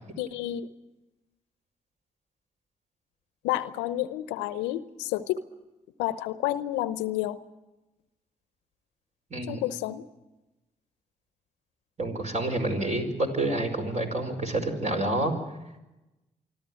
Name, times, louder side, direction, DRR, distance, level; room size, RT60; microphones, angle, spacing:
voice 1, 0.2-0.7 3.4-5.4 6.0-7.4 9.5-10.0, left 14 dB, 80° left, 15 dB, 0.8 m, -30 dB
voice 2, 9.3-9.6 12.0-15.3, right 2 dB, 40° right, 4 dB, 5.2 m, -28 dB
25.0 x 13.5 x 9.2 m, 1.0 s
hypercardioid pair, 40°, 18 cm